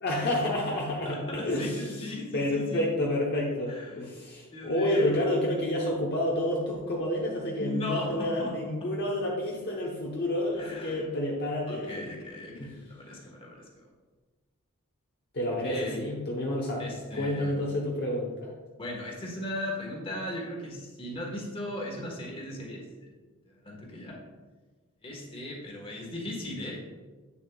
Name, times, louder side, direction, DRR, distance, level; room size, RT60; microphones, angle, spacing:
voice 1, 0.0-12.1 12.5-12.7 15.3-16.9 17.1-18.5, left 1 dB, 50° left, -3 dB, 1.0 m, -29 dB
voice 2, 1.0-2.9 3.7-4.0 4.5-5.3 7.6-8.9 10.6-11.1 11.7-13.8 15.5-16.1 16.8-17.7 18.8-23.1 23.5-24.2 25.0-26.7, left 1 dB, 25° left, -2 dB, 1.4 m, -38 dB
8.5 x 6.9 x 2.3 m, 1.3 s
head